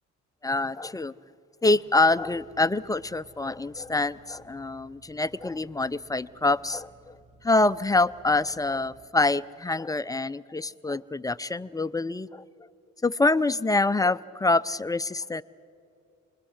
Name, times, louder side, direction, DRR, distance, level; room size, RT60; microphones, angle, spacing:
voice 1, 0.4-1.1 1.6-6.9 7.4-12.4 13.0-15.4, left 2 dB, 10° left, 14 dB, 0.5 m, -25 dB
sound 1, 2.0-9.1, right 2 dB, 20° right, 1.7 m, -57 dB
26.5 x 21.0 x 6.5 m, 2.5 s
cardioid pair, 90°, 30 cm